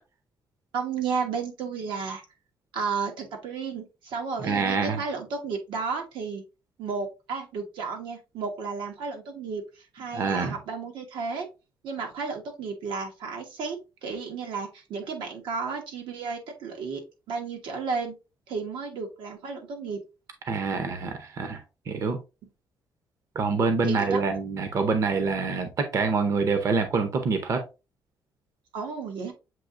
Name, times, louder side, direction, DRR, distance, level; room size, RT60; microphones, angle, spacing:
voice 1, 0.7-2.2 2.7-6.4 6.8-11.5 11.8-18.1 18.5-20.0 22.4-22.5 23.8-24.2 28.7-29.3, right 5 dB, 90° right, 1.2 m, -33 dB
voice 2, 4.4-5.0 10.1-10.5 20.5-21.6 21.9-22.2 23.4-27.6, right 4 dB, 40° right, 0.6 m, -26 dB
7.5 x 2.8 x 2.5 m
cardioid pair, 160°, 8 cm